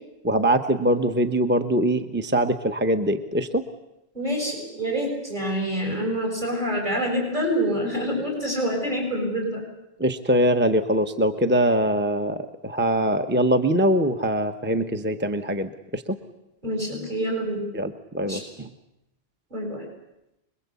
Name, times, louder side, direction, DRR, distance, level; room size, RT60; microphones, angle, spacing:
voice 1, 0.2-3.6 10.0-12.4 12.6-16.2 17.7-18.7, equal, 10° right, 8 dB, 1.1 m, -23 dB
voice 2, 4.1-9.6 16.6-17.7 18.2-18.4 19.5-19.8, equal, 45° right, 0 dB, 8.3 m, -26 dB
26.0 x 22.0 x 8.4 m, 0.88 s
omnidirectional pair, 1.1 m